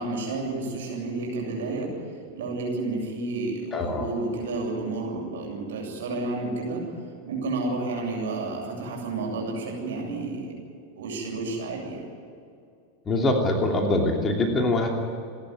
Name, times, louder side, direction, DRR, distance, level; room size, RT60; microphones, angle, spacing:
voice 1, 0.0-1.9 2.3-6.8 7.3-10.5 11.0-12.1, right 3 dB, 60° right, -1 dB, 7.9 m, -31 dB
voice 2, 3.7-4.1 13.1-14.9, left 2 dB, 20° left, 2 dB, 3.0 m, -23 dB
30.0 x 11.5 x 9.4 m, 2.5 s
figure-of-eight pair, 90°, 0 cm